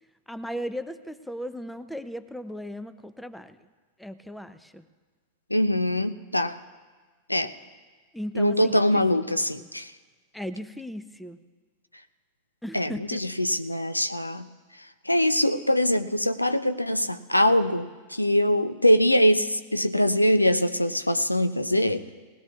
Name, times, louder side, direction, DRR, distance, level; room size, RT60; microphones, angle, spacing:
voice 1, 0.3-3.6 4.0-4.8 8.1-8.8 9.1-9.7 10.3-11.4 12.6-13.2, equal, 5° left, 12 dB, 0.6 m, -37 dB
voice 2, 5.5-6.6 7.3-7.5 8.3-9.9 12.7-14.5 15.1-22.0, left 1 dB, 85° left, 11 dB, 0.5 m, -23 dB
19.5 x 17.5 x 2.4 m, 1.4 s
figure-of-eight pair, 90°, 0 cm